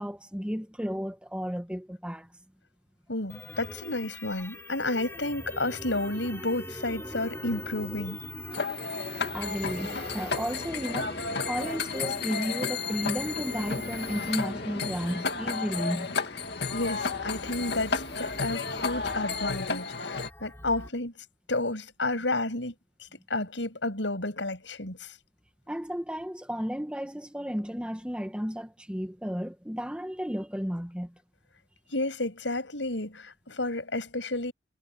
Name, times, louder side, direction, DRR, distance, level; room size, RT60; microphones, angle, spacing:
voice 1, 0.0-2.3 9.3-11.2 11.5-16.1 25.7-31.1, equal, 5° right, 1.6 m, -33 dB
voice 2, 3.1-8.2 16.7-21.1 21.5-22.7 23.0-25.1 31.9-34.5, left 2 dB, 90° left, 6.7 m, -31 dB
sound 1, 3.3-20.9, left 1 dB, 15° left, 5.5 m, -42 dB
sound 2, 8.5-20.3, left 4 dB, 65° left, 2.3 m, -33 dB
head